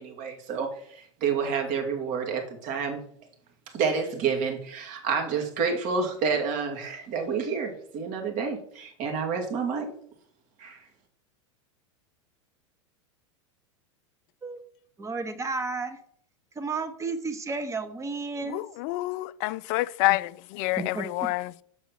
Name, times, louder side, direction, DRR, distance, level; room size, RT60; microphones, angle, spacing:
voice 1, 0.0-3.0 3.7-9.9 10.6-10.8, right 5 dB, 50° right, 2.3 m, -29 dB
voice 2, 15.0-16.0 16.5-18.6 20.8-21.3, right 3 dB, 20° right, 1.2 m, -32 dB
voice 3, 18.5-21.6, left 19 dB, 50° left, 0.4 m, -28 dB
7.0 x 4.8 x 5.8 m
hypercardioid pair, 95°, 17 cm